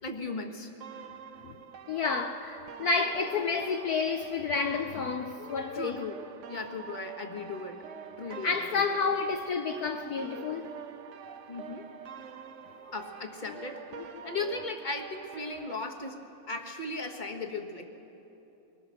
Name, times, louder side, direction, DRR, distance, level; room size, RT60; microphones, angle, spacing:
voice 1, 0.0-0.7 5.7-6.2 6.5-7.8 8.2-9.0 11.5-11.8 12.9-16.2 16.5-17.9, left 3 dB, 25° left, 1.3 m, -37 dB
sound 1, 0.8-15.8, right 8 dB, 65° right, 0.7 m, -46 dB
voice 2, 1.9-6.0 8.4-10.7 11.3-11.4 14.2-14.4, left 4 dB, 65° left, 1.0 m, -30 dB
22.5 x 20.5 x 6.5 m
omnidirectional pair, 2.2 m